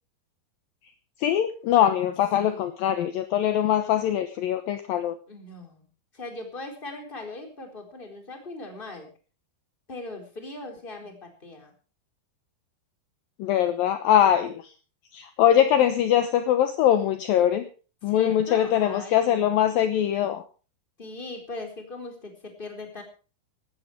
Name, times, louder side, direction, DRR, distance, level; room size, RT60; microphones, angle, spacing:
voice 1, 1.2-5.2 13.4-14.6 15.1-17.7 18.0-20.4, left 10 dB, 70° left, 9 dB, 2.5 m, -22 dB
voice 2, 2.4-2.7 5.3-5.8 6.1-9.1 9.9-11.7 18.0-19.5 21.0-23.0, left 2 dB, 10° left, 4 dB, 3.8 m, -39 dB
17.0 x 13.0 x 5.0 m, 0.36 s
omnidirectional pair, 4.8 m